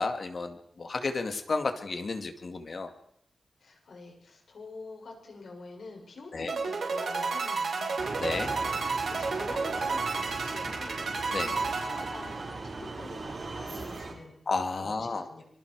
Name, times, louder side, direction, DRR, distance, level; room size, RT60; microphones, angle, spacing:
voice 1, 0.0-2.9 6.3-6.5 8.2-8.5 11.3-11.5 14.5-15.4, left 3 dB, 50° left, 7 dB, 2.1 m, -32 dB
voice 2, 3.6-8.3 8.6-14.4 14.8-15.4, left 3 dB, 75° left, 1 dB, 6.8 m, -46 dB
sound 1, 6.5-12.8, right 4 dB, 75° right, 4.8 m, -31 dB
sound 2, 8.0-14.1, right 3 dB, 50° right, 5.1 m, -39 dB
25.0 x 23.5 x 4.8 m, 0.73 s
wide cardioid pair, 120°, 0 cm